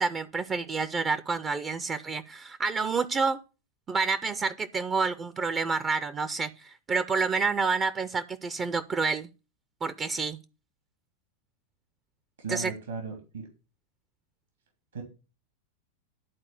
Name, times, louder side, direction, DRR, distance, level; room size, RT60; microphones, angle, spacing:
voice 1, 0.0-3.4 3.9-9.3 9.8-10.4 12.5-12.7, right 4 dB, 20° right, 12 dB, 0.5 m, -28 dB
voice 2, 12.4-13.5 14.9-15.0, right 4 dB, 70° right, 3 dB, 2.6 m, -36 dB
11.0 x 4.3 x 7.0 m, 0.32 s
figure-of-eight pair, 90°, 0 cm